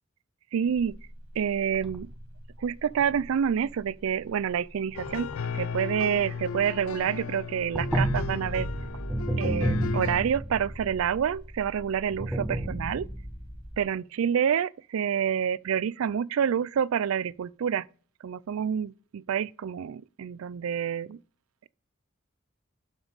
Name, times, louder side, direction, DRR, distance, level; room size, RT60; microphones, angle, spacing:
voice 1, 0.5-1.0 1.4-2.1 2.6-5.3 5.5-8.7 9.4-13.1 13.8-17.9 18.2-21.2, right 8 dB, 80° right, 0.4 m, -28 dB
sound 1, 0.7-7.1 7.3-13.8, right 1 dB, 5° right, 0.8 m, -33 dB
sound 2, 5.0-10.2, left 6 dB, 80° left, 0.4 m, -35 dB
12.0 x 5.4 x 4.0 m
head